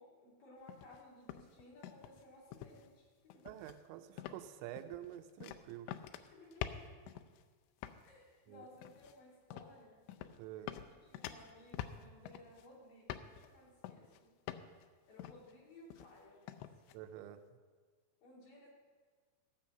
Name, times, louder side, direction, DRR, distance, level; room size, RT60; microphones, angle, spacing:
voice 1, 0.0-3.4 6.3-6.9 8.0-10.0 10.6-10.7 11.0-14.3 15.1-16.6 18.2-18.7, left 1 dB, 55° left, -5 dB, 4.1 m, -59 dB
sound 1, 0.7-1.0 1.3-2.2 2.5-2.9 3.3-3.8 4.2-4.5 4.8-7.4 7.8-8.1 8.8-9.1 9.5-9.7 10.1-10.4 10.7-12.7 13.1-13.5 13.8-14.2 14.5-14.8 15.2-15.5 15.9-16.2 16.5-16.9, left 11 dB, 85° left, 2.7 m, -47 dB
voice 2, 3.4-5.9 8.5-8.7 10.4-10.7 16.9-17.4, right 12 dB, 90° right, 9 dB, 3.0 m, -48 dB
16.0 x 5.7 x 7.5 m, 1.5 s
omnidirectional pair, 5.1 m